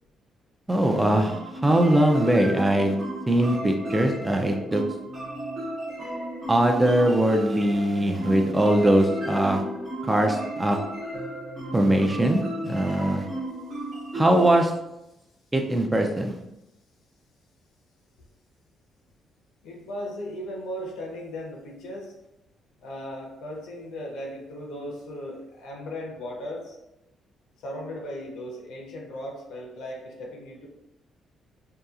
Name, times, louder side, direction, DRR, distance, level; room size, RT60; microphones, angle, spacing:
voice 1, 0.7-3.0 3.3-4.8 6.5-9.6 10.0-10.8 11.7-13.3 14.1-14.7 15.5-16.4, right 1 dB, 15° right, 3 dB, 0.3 m, -21 dB
sound 1, 0.8-14.6, equal, 50° right, 0.8 m, -34 dB
voice 2, 19.6-22.1 22.8-26.8 27.6-30.7, equal, 85° left, -1 dB, 0.7 m, -37 dB
2.8 x 2.3 x 2.4 m, 0.90 s
cardioid pair, 90°, 0 cm